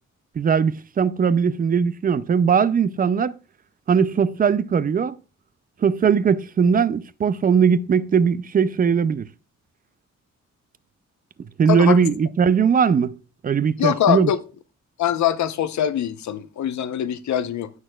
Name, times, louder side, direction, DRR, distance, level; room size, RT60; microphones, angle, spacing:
voice 1, 0.4-3.4 3.9-5.2 5.8-9.3 11.6-13.1 13.4-14.3, right 6 dB, 30° right, 0.4 m, -19 dB
voice 2, 11.7-12.0 13.8-14.4 15.0-17.7, left 10 dB, 75° left, 0.7 m, -23 dB
16.0 x 6.4 x 2.3 m
wide cardioid pair, 160°, 29 cm